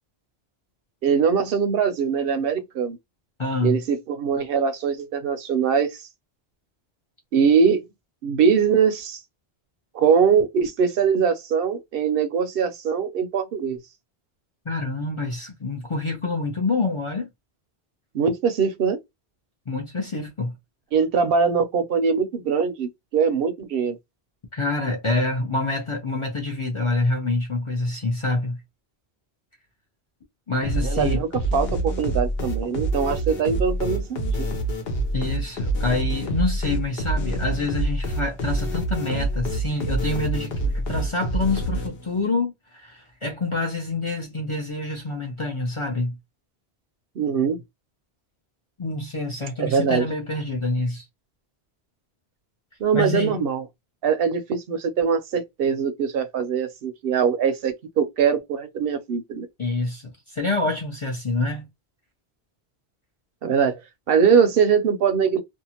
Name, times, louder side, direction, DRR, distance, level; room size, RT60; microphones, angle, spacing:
voice 1, 1.0-3.0 3.6-6.0 7.3-7.8 8.2-9.2 9.9-13.8 18.1-19.0 20.9-24.0 30.8-34.5 47.2-47.6 49.6-50.1 52.8-53.6 54.0-59.5 63.4-63.8 64.1-65.4, right 6 dB, 70° right, 0.7 m, -22 dB
voice 2, 3.4-3.8 14.7-17.3 19.7-20.5 24.5-28.6 30.5-31.2 35.1-46.2 48.8-51.0 52.9-53.4 59.6-61.7, left 2 dB, 40° left, 0.5 m, -26 dB
sound 1, 30.6-42.2, right 1 dB, 70° left, 1.1 m, -26 dB
2.6 x 2.3 x 2.8 m
omnidirectional pair, 1.1 m